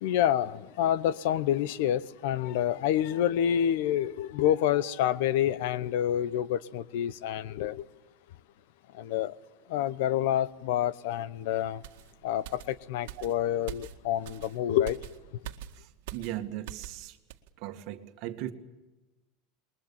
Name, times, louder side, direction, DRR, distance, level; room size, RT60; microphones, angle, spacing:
voice 1, 0.0-7.8 9.0-9.3 9.7-11.8 12.2-15.0, left 11 dB, 70° left, 1.0 m, -28 dB
sound 1, 11.8-17.0 17.3-17.5, right 13 dB, 75° right, 1.9 m, -44 dB
voice 2, 15.8-17.2 17.6-18.5, right 13 dB, 50° right, 2.1 m, -38 dB
28.5 x 22.0 x 7.2 m
supercardioid pair, 160°, 0 cm